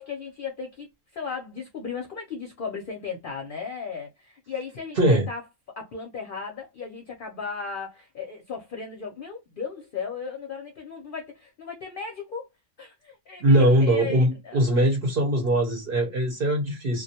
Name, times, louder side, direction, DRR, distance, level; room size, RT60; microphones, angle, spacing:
voice 1, 0.0-5.4 5.7-12.5 12.8-14.6, left 5 dB, 55° left, 0.6 m, -36 dB
voice 2, 5.0-5.3 13.4-17.0, right 1 dB, 55° right, 0.8 m, -21 dB
2.3 x 2.1 x 2.7 m
omnidirectional pair, 1.3 m